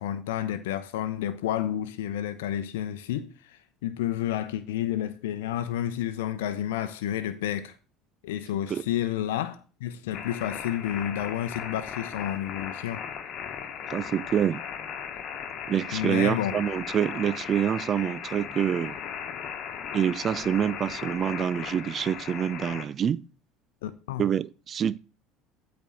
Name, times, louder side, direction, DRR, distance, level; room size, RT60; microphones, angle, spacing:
voice 1, 0.0-7.7 8.2-13.1 15.9-16.6 23.8-24.2, left 11 dB, 75° left, 0.6 m, -30 dB
sound 1, 10.1-22.9, left 8 dB, 50° left, 1.2 m, -37 dB
voice 2, 13.9-14.6 15.7-19.0 19.9-23.2 24.2-25.0, right 9 dB, 40° right, 0.4 m, -26 dB
8.4 x 4.3 x 6.2 m
hypercardioid pair, 70°, 0 cm